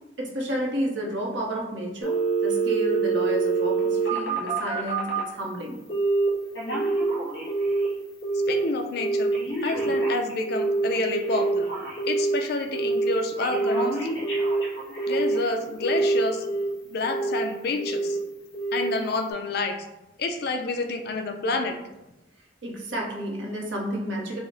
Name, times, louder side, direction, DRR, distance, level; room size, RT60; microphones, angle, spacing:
voice 1, 0.2-5.8 22.6-24.4, equal, 80° right, -1 dB, 1.0 m, -31 dB
Telephone, 2.0-5.3 5.9-6.3 6.5-7.9 8.2-8.6 9.0-12.4 12.7-13.1 13.4-15.4 15.8-16.7 17.0-17.4 17.8-18.2 18.5-18.9 19.3-19.4, right 3 dB, 75° left, 1.5 m, -25 dB
voice 2, 8.3-9.3 9.6-11.7 12.1-14.0 15.1-16.5 16.9-18.2 18.7-19.8 20.2-21.8, left 3 dB, 60° left, 6 dB, 0.5 m, -28 dB
5.0 x 2.1 x 3.9 m, 0.97 s
head